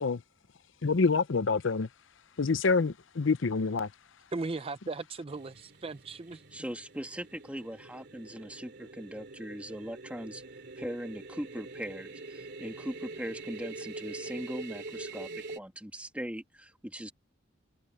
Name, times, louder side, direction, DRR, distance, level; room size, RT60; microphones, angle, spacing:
voice 1, 0.8-1.9 2.4-3.9, left 4 dB, 65° left, 0.6 m, -26 dB
voice 2, 4.3-6.4, right 3 dB, 30° right, 0.5 m, -37 dB
sound 1, 5.3-15.6, right 3 dB, 55° right, 2.8 m, -45 dB
voice 3, 6.5-10.4 10.8-15.3 15.5-17.1, equal, 5° right, 2.0 m, -40 dB
head